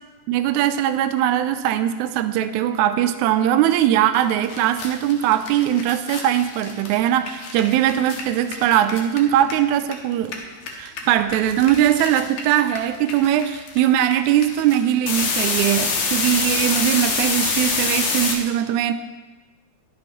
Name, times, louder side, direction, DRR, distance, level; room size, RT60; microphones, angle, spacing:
voice 1, 0.3-10.4 10.8-18.9, right 11 dB, 80° right, 10 dB, 1.9 m, -20 dB
sound 1, 4.1-4.2 4.4-9.9 10.2-18.3, left 4 dB, 70° left, 2.3 m, -26 dB
10.5 x 6.0 x 5.2 m, 1.3 s
omnidirectional pair, 3.5 m